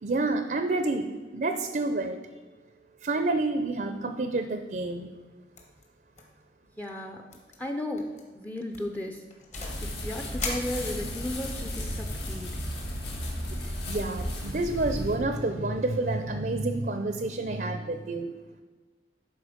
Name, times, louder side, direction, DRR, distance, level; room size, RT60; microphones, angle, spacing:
voice 1, 0.0-2.2 3.0-5.1 13.9-18.3, right 2 dB, 50° right, 7 dB, 0.5 m, -29 dB
sound 1, 5.5-5.8 6.1-6.4 6.7-6.8 7.3-7.6 8.0-8.2 8.7-9.9 10.4-11.4, left 4 dB, 40° left, 1.4 m, -38 dB
voice 2, 6.8-7.3 7.6-9.3 9.8-12.5, left 1 dB, 10° left, 4 dB, 0.5 m, -35 dB
sound 2, 9.5-15.2, equal, 75° left, 1.8 m, -34 dB
11.5 x 4.4 x 5.1 m, 1.3 s
head